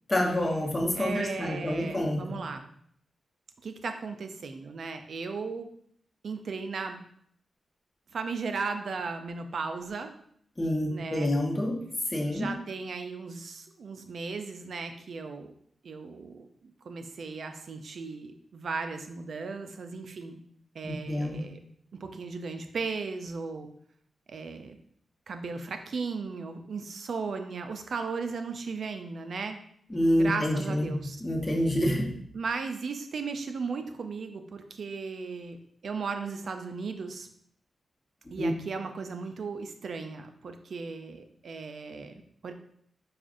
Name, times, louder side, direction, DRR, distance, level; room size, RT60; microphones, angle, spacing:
voice 1, 0.1-2.4 10.6-11.8 12.1-12.5 20.8-21.4 29.9-32.1 38.4-38.5, left 1 dB, 25° left, -1 dB, 0.9 m, -27 dB
voice 2, 0.9-2.6 3.6-5.7 6.2-7.0 8.1-10.1 10.9-11.3 12.3-15.5 15.8-16.5 16.8-20.4 20.7-21.6 21.9-23.7 24.3-24.8 25.3-29.6 30.2-31.2 32.3-35.6 35.8-37.3 38.3-42.5, right 4 dB, 70° right, 7 dB, 0.4 m, -36 dB
4.8 x 2.4 x 2.5 m, 0.66 s
cardioid pair, 55°, 0 cm